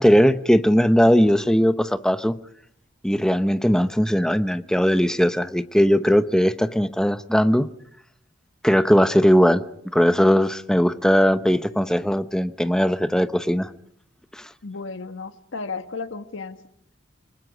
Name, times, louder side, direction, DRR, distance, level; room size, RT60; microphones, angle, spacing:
voice 1, 0.0-2.4 3.0-7.7 8.6-9.6 9.9-13.7 14.3-14.4, equal, 5° left, 12 dB, 0.8 m, -19 dB
voice 2, 14.6-16.6, left 4 dB, 90° left, 10 dB, 1.4 m, -33 dB
30.0 x 20.0 x 5.1 m, 0.73 s
head